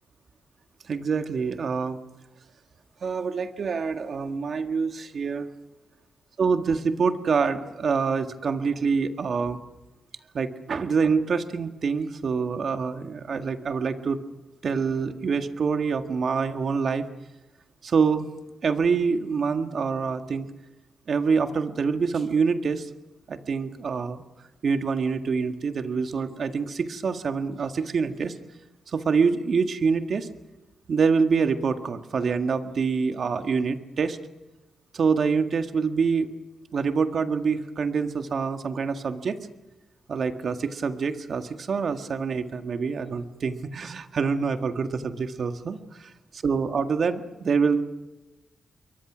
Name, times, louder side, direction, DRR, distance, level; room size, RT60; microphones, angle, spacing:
voice 1, 0.9-2.0 3.0-5.5 6.4-9.6 10.3-14.2 14.6-17.1 17.8-18.3 18.6-20.5 21.1-22.9 23.3-24.2 24.6-28.3 28.9-30.3 30.9-34.2 34.9-36.3 36.7-39.4 40.1-46.1 46.4-47.8, right 5 dB, 60° right, 7 dB, 1.7 m, -26 dB
28.0 x 23.0 x 6.2 m, 1.0 s
cardioid pair, 70°, 0 cm